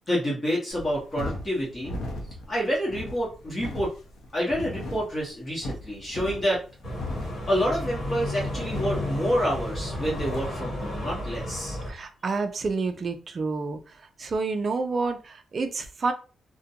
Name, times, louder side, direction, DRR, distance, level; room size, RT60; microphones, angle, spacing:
voice 1, 0.1-1.9 2.5-3.9 4.3-6.6 7.5-11.8, equal, 25° left, -6 dB, 0.9 m, -28 dB
sound 1, 0.7-10.6, left 1 dB, 80° left, 0.7 m, -38 dB
sound 2, 6.8-11.9, left 1 dB, 40° left, 1.2 m, -33 dB
voice 2, 11.9-13.8 14.2-16.1, right 4 dB, 35° right, 7 dB, 0.4 m, -29 dB
2.5 x 2.1 x 2.7 m, 0.35 s
wide cardioid pair, 165°, 0 cm